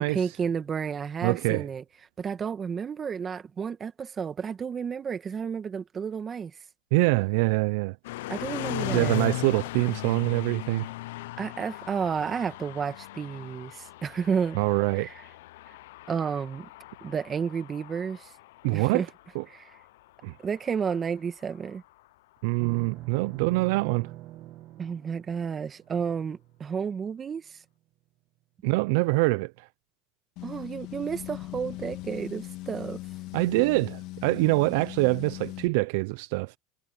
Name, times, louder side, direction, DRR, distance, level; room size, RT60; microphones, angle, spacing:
voice 1, 0.0-1.8 2.2-6.5 8.3-9.3 11.4-14.6 15.0-15.1 16.1-16.7 17.0-18.3 18.7-19.1 19.5-19.7 20.4-21.8 24.8-27.6 30.4-33.0, right 6 dB, 25° right, 1.6 m, -31 dB
voice 2, 1.2-1.7 6.9-8.0 8.9-10.9 14.6-15.1 18.6-19.0 19.3-19.4 20.2-20.3 22.4-24.1 28.6-29.7 33.3-36.5, right 25 dB, 70° right, 0.4 m, -25 dB
sound 1, 8.0-22.1, left 19 dB, 80° left, 0.4 m, -39 dB
sound 2, 22.6-27.0, right 15 dB, 50° right, 1.5 m, -44 dB
sound 3, 30.4-35.7, left 18 dB, 55° left, 1.8 m, -39 dB
supercardioid pair, 130°, 0 cm